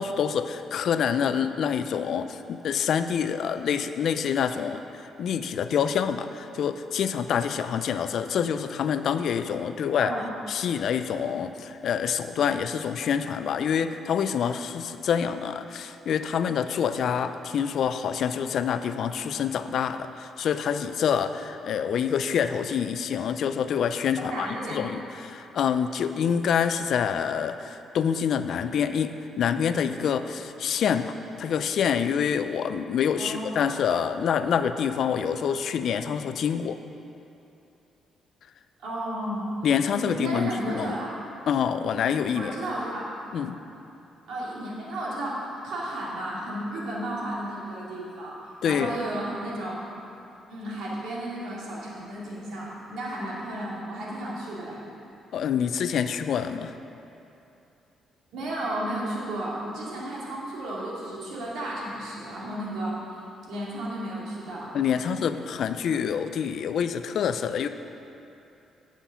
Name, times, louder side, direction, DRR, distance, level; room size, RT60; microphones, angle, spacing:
voice 1, 0.0-10.1 10.5-36.8 39.6-41.0 41.5-42.5 43.3-43.6 48.6-49.0 55.3-56.8 64.7-67.7, left 7 dB, 65° left, 10 dB, 0.4 m, -26 dB
voice 2, 24.3-24.8 33.2-33.7 38.8-39.5 39.9-41.1 42.4-43.1 44.3-49.8 50.5-54.8 58.3-63.0 63.5-64.7, right 1 dB, 80° right, -5 dB, 2.4 m, -33 dB
10.5 x 5.8 x 5.7 m, 2.8 s
cardioid pair, 90°, 0 cm